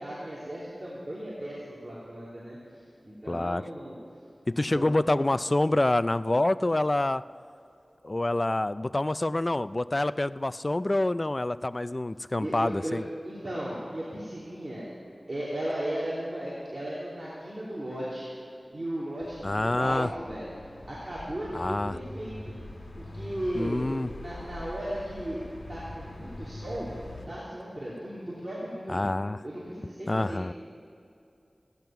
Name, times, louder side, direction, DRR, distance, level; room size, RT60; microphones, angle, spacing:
voice 1, 0.0-2.8 3.0-4.0 4.6-5.1 12.4-14.9 15.3-18.3 18.7-20.5 20.9-22.4 23.0-23.8 24.2-25.4 25.7-26.9 27.3-29.0 29.4-30.5, right 1 dB, 40° right, -8 dB, 3.0 m, -36 dB
voice 2, 3.3-3.6 4.5-7.2 8.0-13.0 19.4-20.1 21.5-21.9 23.5-24.1 28.9-29.4 30.1-30.5, left 2 dB, 35° left, 15 dB, 0.3 m, -27 dB
sound 1, 19.2-27.3, left 1 dB, 60° left, 2.2 m, -43 dB
16.0 x 10.5 x 5.8 m, 2.6 s
wide cardioid pair, 60°, 0 cm